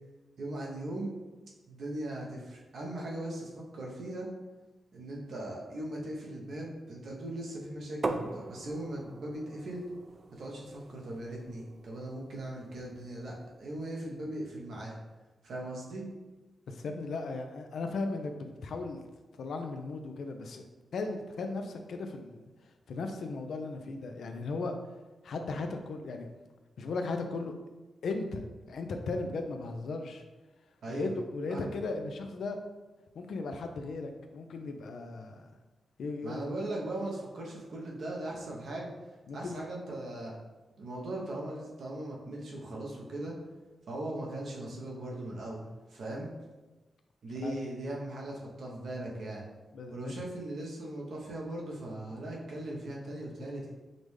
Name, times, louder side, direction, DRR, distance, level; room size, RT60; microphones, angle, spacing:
voice 1, 0.4-1.2 1.7-4.3 4.9-9.8 10.4-15.0 15.4-16.1 30.8-31.1 31.5-31.7 36.2-38.9 39.3-40.4 40.8-43.4 43.9-46.3 47.2-49.4 49.9-53.7, right 1 dB, 75° right, -2 dB, 0.8 m, -39 dB
sound 1, 8.0-13.7, right 3 dB, 45° right, 0.3 m, -41 dB
voice 2, 16.7-19.0 19.3-20.7 20.9-24.8 25.2-26.3 26.8-27.5 28.0-30.2 30.9-32.6 33.1-35.5 36.0-36.4 39.3-39.6 47.4-47.5 49.7-50.1, left 3 dB, 75° left, 5 dB, 0.4 m, -36 dB
5.1 x 2.0 x 3.2 m, 1.2 s
supercardioid pair, 50°, 0 cm